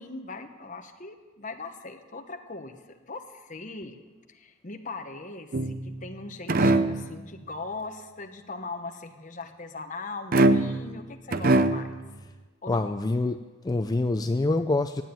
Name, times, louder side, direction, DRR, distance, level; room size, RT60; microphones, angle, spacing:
voice 1, 0.0-4.0 4.3-11.9 12.6-12.9, left 3 dB, 40° left, 5 dB, 1.1 m, -40 dB
sound 1, 5.5-6.1 6.5-7.1 10.3-10.9 11.3-12.0, right 2 dB, 45° right, 0.6 m, -22 dB
voice 2, 12.7-13.4 13.6-15.0, left 2 dB, 20° left, 7 dB, 0.4 m, -25 dB
12.0 x 8.8 x 9.0 m, 1.3 s
head